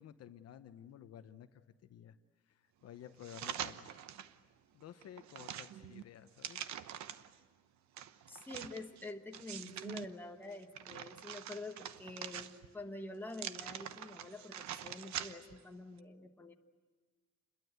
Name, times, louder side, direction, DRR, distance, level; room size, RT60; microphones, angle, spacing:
voice 1, 0.0-2.2 2.5-3.9 4.7-6.7, left 10 dB, 55° left, 10 dB, 0.9 m, -53 dB
sound 1, 3.2-4.3 4.8-7.4 8.0-10.1 10.5-12.8 13.3-15.6 16.0-16.1, right 10 dB, 70° right, 1.0 m, -45 dB
voice 2, 8.3-16.5, left 2 dB, 5° left, 3 dB, 1.3 m, -47 dB
29.0 x 22.0 x 8.1 m, 1.4 s
cardioid pair, 180°, 30 cm